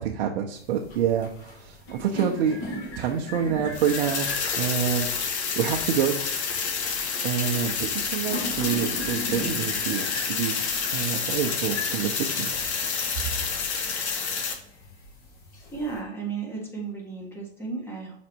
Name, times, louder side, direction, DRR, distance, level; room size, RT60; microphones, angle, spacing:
voice 1, 0.0-2.6 3.0-4.3 4.6-5.1 5.6-6.1 7.2-12.5, right 8 dB, 55° right, 1 dB, 0.9 m, -27 dB
sound 1, 0.6-16.0, equal, 35° left, 1.9 m, -40 dB
sound 2, 3.7-14.5, left 5 dB, 75° left, 1.5 m, -29 dB
voice 2, 15.7-18.2, right 5 dB, 5° left, -1 dB, 1.4 m, -34 dB
6.1 x 4.2 x 4.5 m, 0.76 s
hypercardioid pair, 145°, 33 cm